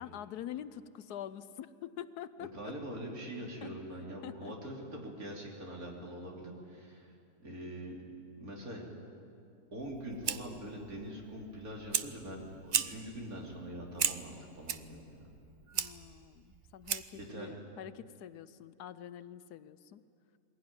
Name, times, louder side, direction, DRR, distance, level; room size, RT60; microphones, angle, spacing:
voice 1, 0.0-2.8 3.6-3.7 4.2-4.5 15.7-20.0, left 10 dB, 80° left, 14 dB, 1.2 m, -45 dB
voice 2, 2.5-7.1 7.4-8.0 8.4-8.8 9.7-15.2 17.1-17.6, right 1 dB, 65° right, -1 dB, 3.6 m, -43 dB
Fire, 9.8-17.3, right 8 dB, 80° right, 0.4 m, -38 dB
22.0 x 16.5 x 9.6 m, 2.5 s
omnidirectional pair, 1.7 m